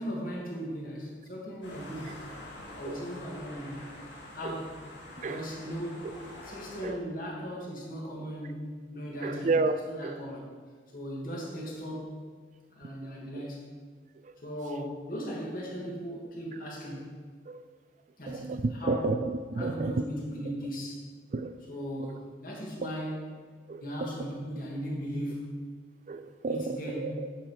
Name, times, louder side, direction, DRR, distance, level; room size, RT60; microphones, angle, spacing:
voice 1, 0.0-3.9 4.3-4.8 5.2-6.1 6.4-9.5 9.8-10.4 10.9-12.2 12.7-13.7 14.4-17.2 18.2-18.5 18.8-19.1 19.6-21.1 21.7-23.4 23.8-25.7 26.5-27.2, equal, 50° left, -3 dB, 2.0 m, -38 dB
sound 1, 1.6-6.8, left 1 dB, 85° left, 2.1 m, -46 dB
voice 2, 9.2-9.7 10.0-10.2 13.4-13.5 14.2-14.3 17.5-17.6 18.3-20.0 21.3-21.5 22.0-22.1 23.7-23.8 26.1-27.3, right 3 dB, 40° right, 10 dB, 0.3 m, -31 dB
8.8 x 5.5 x 4.8 m, 1.5 s
head